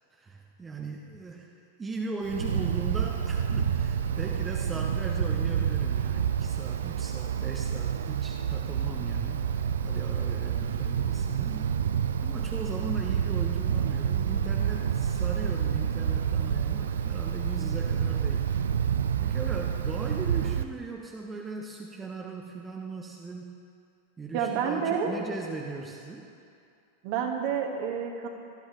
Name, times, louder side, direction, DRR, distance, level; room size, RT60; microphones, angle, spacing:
voice 1, 0.1-1.5 1.8-11.7 12.2-18.5 19.2-23.6 24.2-26.3, right 3 dB, 15° right, 0 dB, 1.0 m, -38 dB
Wind, 2.2-20.6, right 8 dB, 65° right, 0.4 m, -28 dB
voice 2, 24.3-25.1 27.0-28.3, right 7 dB, 45° right, 2 dB, 1.6 m, -29 dB
18.5 x 12.5 x 3.1 m, 2.5 s
figure-of-eight pair, 90°, 0 cm